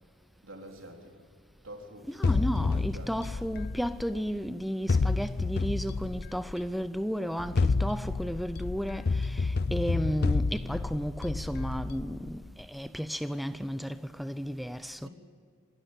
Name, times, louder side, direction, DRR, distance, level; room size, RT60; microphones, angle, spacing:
voice 1, 0.4-1.1 1.6-3.5 15.0-15.1, right 1 dB, 75° right, 3.7 m, -48 dB
voice 2, 2.1-15.1, equal, ahead, 0.5 m, -33 dB
sound 1, 2.2-4.4 4.9-6.7 7.4-12.5, left 3 dB, 50° left, 0.5 m, -29 dB
26.0 x 12.0 x 9.0 m
head